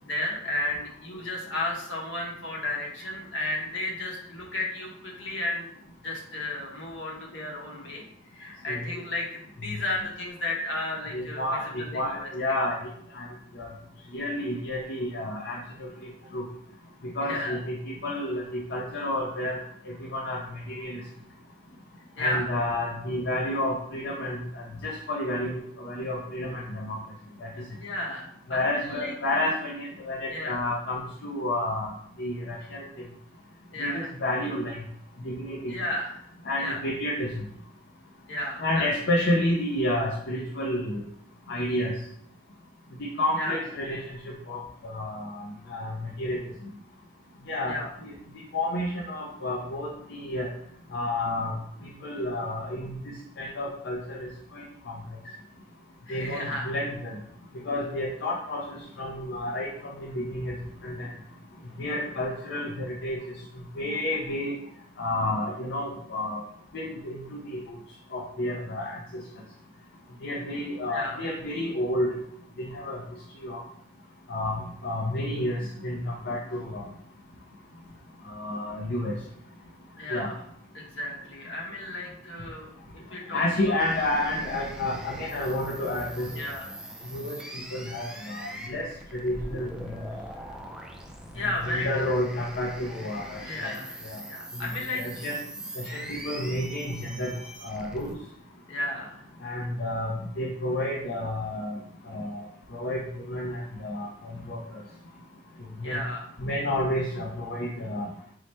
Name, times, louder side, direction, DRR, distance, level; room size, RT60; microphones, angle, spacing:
voice 1, 0.0-8.0 8.3-12.3 17.2-17.6 22.2-22.5 27.8-29.1 30.3-30.6 33.7-34.1 35.7-36.2 36.6-36.8 38.3-38.9 43.4-43.6 47.7-47.9 56.1-56.7 70.9-71.2 80.0-80.4 80.7-82.7 83.1-83.8 86.3-86.7 91.3-92.1 93.4-95.0 98.7-99.2 105.8-106.2, left 2 dB, 75° left, -1 dB, 1.0 m, -33 dB
voice 2, 11.1-12.8 13.1-13.3 13.6-13.7 14.1-16.4 17.2-19.6 19.9-20.4 20.7-21.0 22.2-27.0 27.4-27.5 28.5-31.9 32.2-32.8 33.8-34.8 35.2-35.7 36.5-37.3 38.6-41.0 41.5-41.9 43.2-45.4 45.7-46.4 47.5-47.8 48.0-48.1 48.5-50.5 50.9-51.5 52.0-54.9 56.1-57.1 57.6-60.5 60.8-61.1 61.8-63.2 63.8-64.6 65.0-66.4 66.7-67.6 68.1-69.2 70.2-72.1 72.6-73.0 73.4-73.6 74.3-76.9 78.2-79.1 80.1-80.3 83.3-86.3 87.1-87.4 87.7-88.9 89.1-90.0 91.6-93.7 94.1-94.2 94.9-95.4 95.8-97.3 97.6-98.1 99.4-101.8 102.1-102.4 102.7-104.1 104.5-104.6 105.8-106.0 106.4-108.1, left 1 dB, 60° left, -2 dB, 0.6 m, -30 dB
sound 1, 83.8-98.1, right 1 dB, 5° right, 0.3 m, -42 dB
4.7 x 2.1 x 4.2 m, 0.69 s
head